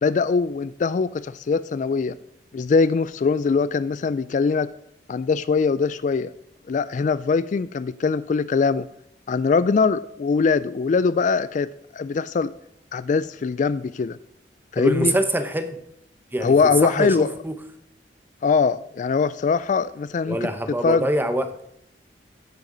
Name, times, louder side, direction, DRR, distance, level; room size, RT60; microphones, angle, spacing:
voice 1, 0.0-2.2 2.5-4.7 5.1-6.3 6.7-8.9 9.3-12.5 12.9-14.2 14.7-15.1 16.4-17.3 18.4-20.5 20.8-21.1, left 5 dB, 45° left, 16 dB, 0.3 m, -22 dB
voice 2, 14.8-15.8 16.3-17.6 20.3-21.6, right 1 dB, 10° right, 8 dB, 0.9 m, -24 dB
15.5 x 9.0 x 3.9 m, 0.77 s
head